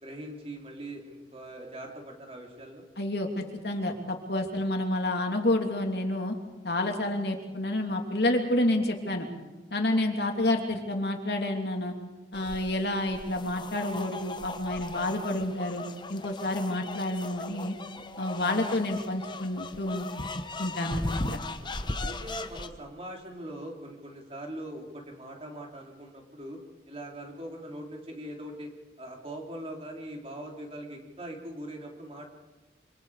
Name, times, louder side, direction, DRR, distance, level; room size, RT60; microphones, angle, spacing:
voice 1, 0.0-2.9 21.6-26.6 26.9-28.7 29.0-32.3, right 1 dB, 35° right, 1 dB, 3.6 m, -41 dB
voice 2, 3.0-6.3 6.6-9.3 9.7-11.9 12.3-15.8 16.1-17.7 18.2-20.1 20.6-21.4, left 1 dB, 65° left, 3 dB, 3.0 m, -29 dB
sound 1, 12.3-22.7, left 2 dB, 25° left, 1.0 m, -38 dB
27.0 x 25.5 x 5.0 m, 1.2 s
head